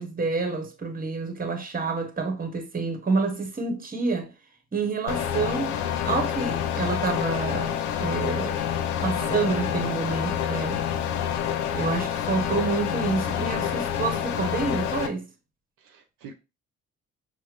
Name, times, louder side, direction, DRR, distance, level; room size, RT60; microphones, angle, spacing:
voice 1, 0.0-4.3 4.7-5.7 6.0-8.6 9.0-10.8 11.7-15.3, right 4 dB, 25° right, 1.3 m, -28 dB
sound 1, 5.1-15.1, left 9 dB, 75° left, 0.7 m, -28 dB
voice 2, 9.2-10.0 15.8-16.3, right 6 dB, 60° right, 1.0 m, -42 dB
6.1 x 2.2 x 3.4 m
figure-of-eight pair, 45°, 38 cm